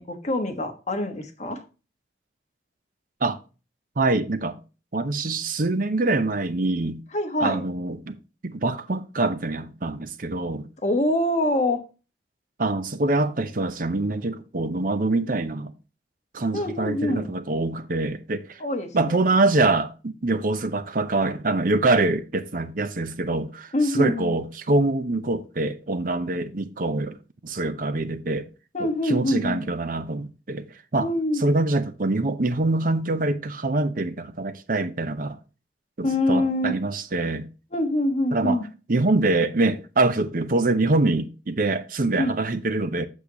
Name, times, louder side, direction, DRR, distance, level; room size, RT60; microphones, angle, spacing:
voice 1, 0.0-1.6 7.1-7.6 10.8-11.8 16.5-17.3 18.6-19.2 23.7-24.3 28.7-29.6 31.0-31.4 36.0-36.8 37.7-38.7 42.2-42.3, left 1 dB, 40° left, 1.3 m, -25 dB
voice 2, 4.0-4.6 4.9-7.0 7.4-8.1 8.4-10.7 12.6-15.7 16.3-18.6 18.9-27.2 27.4-28.5 28.8-30.7 30.9-31.1 31.4-35.4 36.0-37.5 38.3-38.6 38.9-43.1, right 2 dB, 50° right, 0.7 m, -24 dB
8.1 x 6.9 x 2.9 m
head